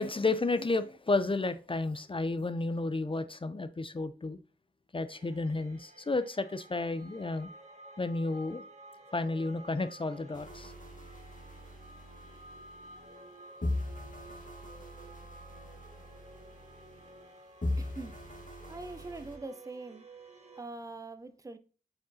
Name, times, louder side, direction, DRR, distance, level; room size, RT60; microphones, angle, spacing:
voice 1, 0.0-4.4 4.9-7.5 8.0-8.6 9.1-10.7, left 3 dB, 30° left, 0.5 m, -32 dB
sound 1, 5.1-20.6, right 2 dB, 40° right, 1.4 m, -53 dB
sound 2, 10.3-13.3 13.6-17.3 17.6-19.4, left 1 dB, 50° left, 1.4 m, -40 dB
voice 2, 17.8-18.1 18.7-20.0 20.6-21.6, right 2 dB, 20° right, 0.6 m, -43 dB
7.6 x 4.7 x 2.7 m
cardioid pair, 50°, 17 cm